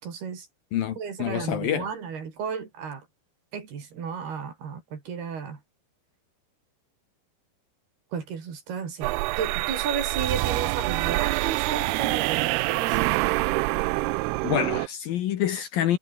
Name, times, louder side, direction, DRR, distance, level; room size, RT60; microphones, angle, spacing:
voice 1, 0.0-0.5 1.0-3.1 3.5-5.6 8.1-13.1, right 6 dB, 60° right, 6.0 m, -34 dB
voice 2, 0.7-1.9 14.4-16.0, left 11 dB, 65° left, 2.6 m, -27 dB
sound 1, 9.0-14.9, right 22 dB, 85° right, 2.3 m, -26 dB
omnidirectional pair, 5.2 m